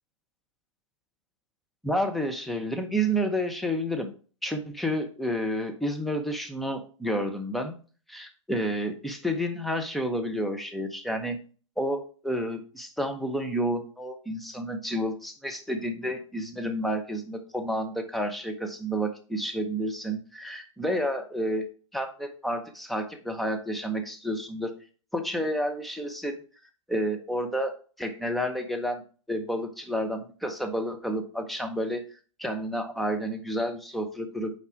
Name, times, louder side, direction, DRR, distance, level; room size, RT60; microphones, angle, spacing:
voice 1, 1.8-4.1 4.4-7.7 8.1-11.4 11.8-21.7 21.9-24.7 25.1-26.4 26.9-29.0 29.3-32.0 32.4-34.5, equal, ahead, 4 dB, 0.9 m, -30 dB
5.8 x 4.7 x 4.6 m, 0.39 s
hypercardioid pair, 115°, 17 cm